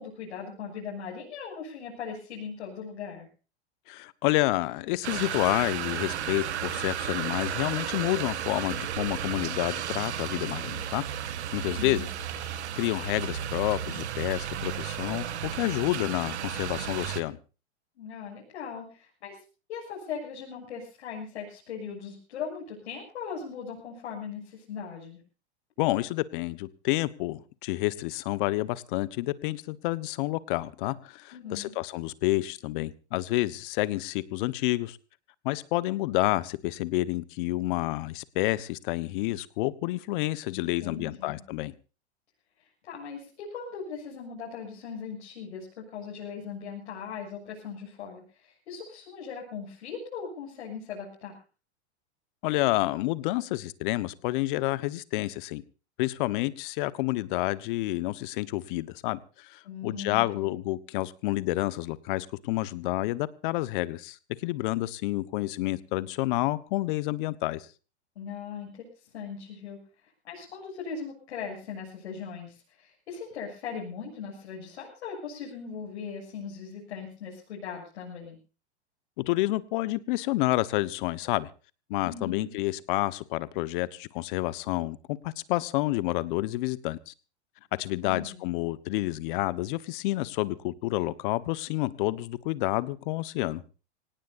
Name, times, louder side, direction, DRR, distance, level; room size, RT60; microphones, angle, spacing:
voice 1, 0.0-3.3 11.5-12.0 18.0-19.4 19.7-25.2 31.3-31.7 40.5-41.4 42.8-51.4 59.6-60.6 68.2-68.9 69.1-78.4 82.0-82.5 88.0-88.4, left 6 dB, 75° left, -3 dB, 7.0 m, -39 dB
voice 2, 3.9-11.0 11.5-12.1 12.7-17.4 25.8-35.0 35.4-41.7 52.4-55.6 56.0-67.7 79.2-81.5 81.9-87.1 87.8-93.6, left 18 dB, 50° left, 17 dB, 1.2 m, -29 dB
sound 1, 5.0-17.2, right 10 dB, 85° right, 2.2 m, -33 dB
25.0 x 18.0 x 2.7 m, 0.35 s
supercardioid pair, 145°, 33 cm